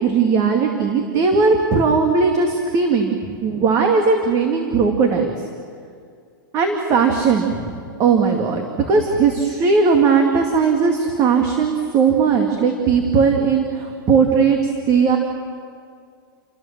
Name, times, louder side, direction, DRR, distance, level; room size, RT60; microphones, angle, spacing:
voice 1, 0.0-5.3 6.5-7.7 8.0-14.6 14.9-15.2, right 5 dB, 30° right, 3 dB, 2.3 m, -18 dB
29.5 x 24.0 x 7.5 m, 2.2 s
supercardioid pair, 160°, 12 cm